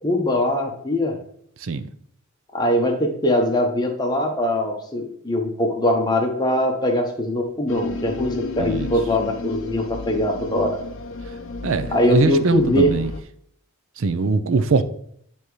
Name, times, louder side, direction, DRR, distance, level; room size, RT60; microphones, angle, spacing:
voice 1, 0.0-1.2 2.5-10.8 11.9-12.9, left 1 dB, 20° left, 0.9 m, -22 dB
sound 1, 7.7-13.2, left 3 dB, 60° left, 0.5 m, -32 dB
voice 2, 8.6-8.9 11.6-13.1 14.0-14.8, right 4 dB, 60° right, 0.5 m, -22 dB
10.0 x 3.5 x 3.2 m
head